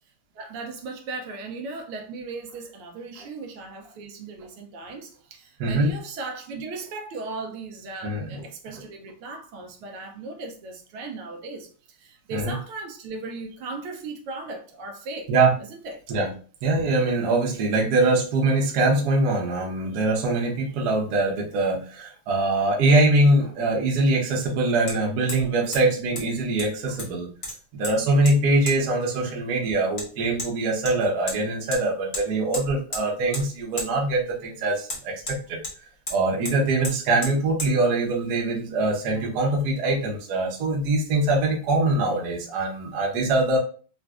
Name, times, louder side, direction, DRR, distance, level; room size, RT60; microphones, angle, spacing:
voice 1, 0.3-15.3 15.6-16.0, right 3 dB, 80° right, 1.4 m, -37 dB
voice 2, 5.6-5.9 8.0-8.4 12.3-12.5 15.3-15.5 16.1-16.3 16.6-27.3 27.7-35.6 36.1-43.6, right 2 dB, 60° right, 1.1 m, -23 dB
Hammer, 24.9-25.0 25.3-25.5 25.7-25.8 26.2-26.3 26.6-27.1 27.4-27.9 28.3-28.4 28.7-28.8 30.0-30.1 30.4-30.5 30.9-31.4 31.7-31.8 32.1-32.2 32.5-33.0 33.3-33.5 33.8-33.9 34.9-35.8 36.1-36.2 36.4-36.6 36.8-37.0 37.2-37.3 37.6-37.7, left 1 dB, 55° left, 0.5 m, -33 dB
3.9 x 2.6 x 2.3 m
omnidirectional pair, 2.4 m